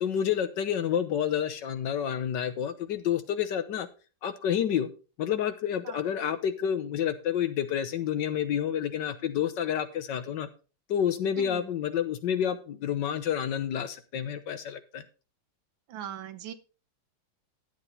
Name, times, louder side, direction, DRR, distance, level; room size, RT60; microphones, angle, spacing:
voice 1, 0.0-3.9 4.2-4.9 5.2-10.5 10.9-15.0, left 9 dB, 65° left, 10 dB, 1.4 m, -29 dB
voice 2, 15.9-16.5, right 10 dB, 75° right, 11 dB, 1.6 m, -39 dB
11.0 x 7.9 x 4.1 m, 0.34 s
omnidirectional pair, 2.2 m